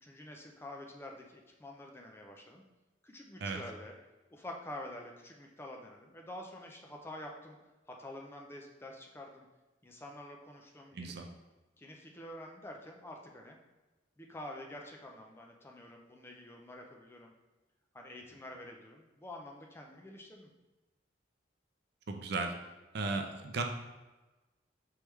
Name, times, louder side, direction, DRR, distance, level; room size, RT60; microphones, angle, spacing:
voice 1, 0.0-2.6 3.0-3.9 4.3-7.6 7.9-9.5 9.8-11.3 11.8-13.6 14.2-17.3 17.9-20.5, left 1 dB, 15° left, 1 dB, 0.4 m, -48 dB
voice 2, 10.9-11.3 22.1-22.6 22.9-23.6, right 3 dB, 60° right, 5 dB, 0.4 m, -35 dB
4.6 x 3.4 x 3.1 m, 1.1 s
head